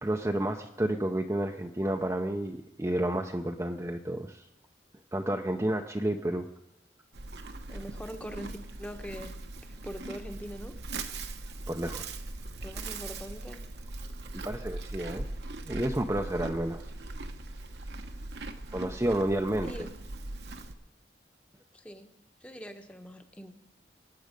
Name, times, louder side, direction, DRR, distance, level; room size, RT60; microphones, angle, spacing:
voice 1, 0.0-4.5 5.1-6.5 11.7-12.1 14.3-15.3 15.6-16.8 18.7-19.7, right 1 dB, 15° right, 3 dB, 0.5 m, -30 dB
Livestock farm animals working animals, 7.1-20.7, right 2 dB, 70° right, 1.0 m, -40 dB
voice 2, 7.7-9.3 9.7-10.7 12.6-13.6 19.6-19.9 21.7-22.1 22.4-23.6, equal, 5° left, 6 dB, 0.9 m, -42 dB
23.5 x 9.4 x 5.2 m, 0.89 s
head